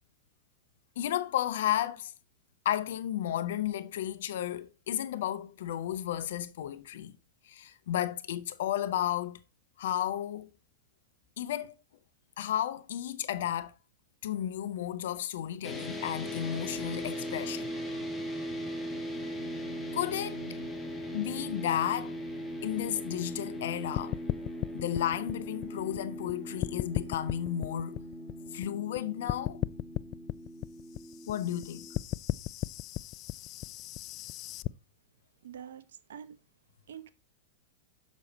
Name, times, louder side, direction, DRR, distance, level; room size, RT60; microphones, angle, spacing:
voice 1, 1.0-2.1 2.6-7.2 7.4-9.4 9.8-10.5 11.4-11.8 12.4-13.7 14.2-17.7 19.9-20.4 21.1-22.2 22.6-24.2 24.7-28.0 28.5-29.6 31.3-31.9, left 11 dB, 70° left, 0.8 m, -33 dB
sound 1, 15.6-32.0, equal, 10° left, 1.8 m, -39 dB
sound 2, 16.2-23.2, right 16 dB, 50° right, 1.1 m, -54 dB
sound 3, 24.0-26.3 26.6-29.0 29.3-34.7, left 17 dB, 45° left, 0.3 m, -35 dB
voice 2, 35.4-36.4 36.9-37.1, right 9 dB, 75° right, 0.9 m, -46 dB
6.8 x 6.2 x 4.1 m
hypercardioid pair, 105°, 0 cm